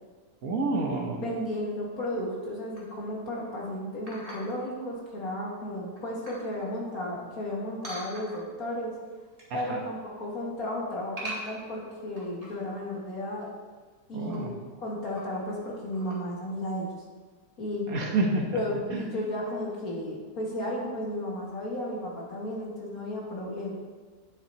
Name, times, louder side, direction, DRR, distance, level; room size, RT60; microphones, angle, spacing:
voice 1, 0.4-1.2 9.5-9.8 14.1-14.5 17.9-18.6 18.9-19.0, right 2 dB, 60° right, 1 dB, 1.4 m, -28 dB
voice 2, 1.2-8.9 9.5-13.5 14.1-14.5 14.8-16.9 17.6-17.9 18.5-23.7, left 1 dB, 60° left, -4 dB, 2.4 m, -34 dB
sound 1, 2.7-3.1 4.1-4.7 5.3-5.4 5.8-6.5 7.8-8.6 9.1-9.6 9.9-10.3 11.2-12.7 13.1-13.2 13.4-13.5 14.1-14.4 15.0-15.5 15.9-16.2, right 1 dB, 20° right, 2.0 m, -42 dB
10.0 x 8.4 x 3.0 m, 1.4 s
omnidirectional pair, 1.8 m